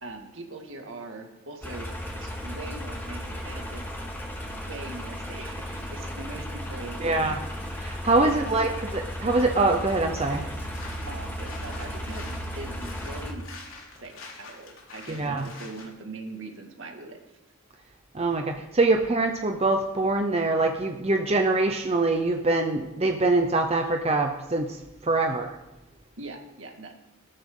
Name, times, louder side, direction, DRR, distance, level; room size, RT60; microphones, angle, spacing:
voice 1, 0.0-3.8 4.5-7.5 8.2-8.8 11.1-13.5 14.0-17.2 26.2-26.9, right 2 dB, 65° right, 3 dB, 2.1 m, -41 dB
sound 1, 1.6-13.3, equal, 10° left, 2.1 m, -35 dB
voice 2, 7.0-7.4 7.8-10.4 15.1-15.5 18.1-25.6, right 2 dB, 30° right, 4 dB, 0.7 m, -24 dB
sound 2, 10.4-15.9, left 3 dB, 75° left, 3.2 m, -46 dB
18.0 x 13.5 x 3.9 m, 1.0 s
head